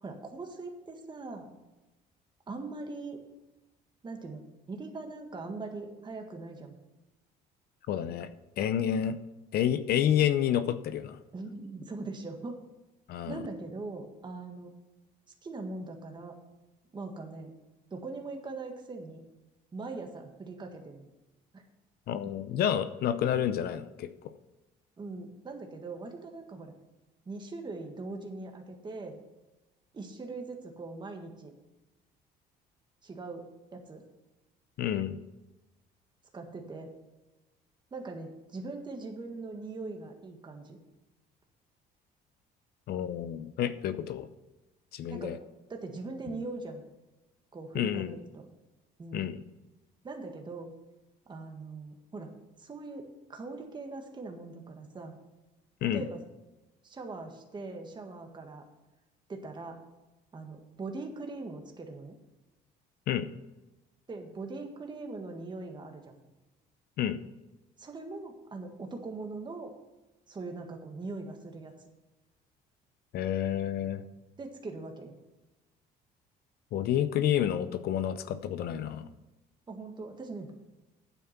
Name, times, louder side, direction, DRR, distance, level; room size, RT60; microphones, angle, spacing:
voice 1, 0.0-1.5 2.5-3.2 4.0-6.7 11.3-12.6 13.3-14.7 15.4-16.3 16.9-17.5 17.9-19.2 19.7-21.0 21.5-21.6 25.0-26.7 27.2-29.2 29.9-31.5 33.0-33.4 33.7-34.0 36.3-36.9 37.9-40.8 45.1-45.4 45.7-46.8 47.5-48.5 49.0-49.3 50.0-50.7 51.3-52.3 52.6-55.2 55.8-56.2 56.8-58.6 59.3-59.8 60.3-62.2 64.1-66.1 67.8-69.7 70.3-71.7 74.4-75.1 79.7-80.5, right 3 dB, 25° right, 3 dB, 1.7 m, -41 dB
voice 2, 7.9-8.3 8.6-9.2 9.5-11.2 13.1-13.4 22.1-24.1 34.8-35.2 42.9-44.3 44.9-45.4 46.3-46.4 47.7-48.2 49.1-49.4 55.8-56.0 63.1-63.3 67.0-67.2 73.1-74.0 76.7-79.1, left 10 dB, 65° left, 12 dB, 0.7 m, -29 dB
9.2 x 8.3 x 5.8 m, 1.0 s
cardioid pair, 110°, 17 cm